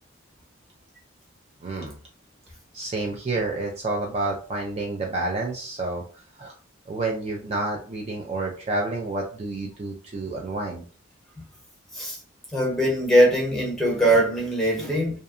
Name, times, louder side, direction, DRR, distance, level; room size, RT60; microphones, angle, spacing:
voice 1, 1.6-2.0 2.7-6.0 6.4-6.5 6.9-10.8, right 2 dB, 35° right, 0.3 m, -29 dB
voice 2, 12.5-15.2, right 1 dB, ahead, 0.8 m, -21 dB
2.7 x 2.2 x 2.5 m
head